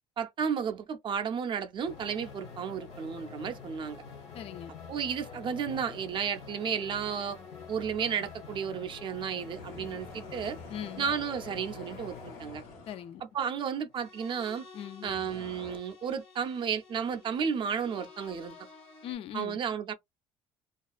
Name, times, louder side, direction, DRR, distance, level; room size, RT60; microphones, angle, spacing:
voice 1, 0.2-4.0 4.9-7.4 7.7-10.6 11.0-12.6 13.3-14.6 15.0-18.6 19.3-19.9, right 7 dB, 45° right, 0.4 m, -33 dB
sound 1, 1.8-19.1, left 5 dB, 70° left, 1.3 m, -48 dB
voice 2, 4.3-4.7 10.7-11.1 12.9-13.2 14.7-15.1 19.0-19.6, left 10 dB, 55° left, 0.4 m, -40 dB
sound 2, 9.2-13.1 15.0-15.8, left 3 dB, 90° left, 1.0 m, -48 dB
2.4 x 2.2 x 2.3 m
cardioid pair, 100°, 12 cm